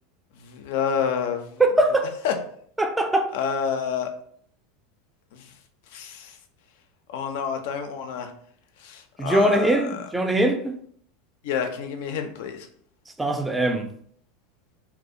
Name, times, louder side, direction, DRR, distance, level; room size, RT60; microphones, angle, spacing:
voice 1, 0.4-1.6 2.2-2.4 3.3-4.1 5.3-5.5 5.9-6.4 7.1-8.3 8.8-10.1 11.4-12.7, left 7 dB, 65° left, 0.3 m, -29 dB
voice 2, 1.6-2.1 2.8-3.3 9.2-10.7 13.2-13.9, right 1 dB, 10° right, 0.4 m, -21 dB
2.3 x 2.0 x 2.6 m
hypercardioid pair, 85°, 0 cm